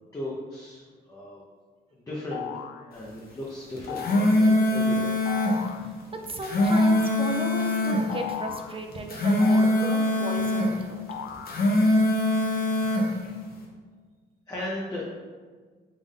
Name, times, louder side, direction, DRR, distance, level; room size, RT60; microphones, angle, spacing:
voice 1, 0.1-0.8 1.1-1.4 1.9-2.5 2.8-5.1 14.5-15.0, left 1 dB, 20° left, -5 dB, 0.6 m, -36 dB
sound 1, 2.3-2.9 3.9-4.4 5.3-5.9 6.6-7.2 8.1-8.8 9.4-10.4 11.1-11.9, left 9 dB, 65° left, 0.4 m, -37 dB
sound 2, 3.8-5.6 6.2-8.0 8.9-10.7 11.3-13.1, left 1 dB, 50° left, 0.9 m, -22 dB
voice 2, 6.1-11.0, right 2 dB, 25° right, 3 dB, 0.4 m, -35 dB
3.7 x 2.5 x 3.6 m, 1.5 s
cardioid pair, 90°, 20 cm